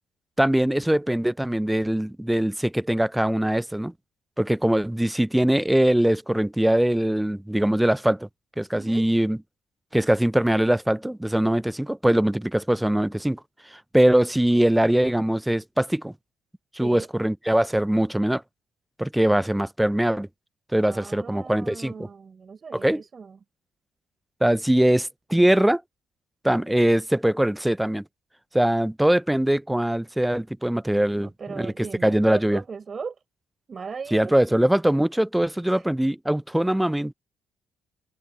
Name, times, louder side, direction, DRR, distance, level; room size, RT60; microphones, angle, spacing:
voice 1, 0.4-3.9 4.4-8.3 8.6-9.4 9.9-13.4 13.7-16.1 16.7-18.4 19.0-20.3 20.7-21.9 22.7-23.0 24.4-25.8 26.4-28.0 28.5-32.6 34.1-37.1, right 1 dB, 5° right, 0.6 m, -22 dB
voice 2, 8.7-9.1 14.6-15.3 16.8-17.1 20.8-23.4 31.2-33.2 33.7-34.6 35.7-35.9, right 5 dB, 45° right, 7.3 m, -38 dB
hypercardioid pair, 55°, 0 cm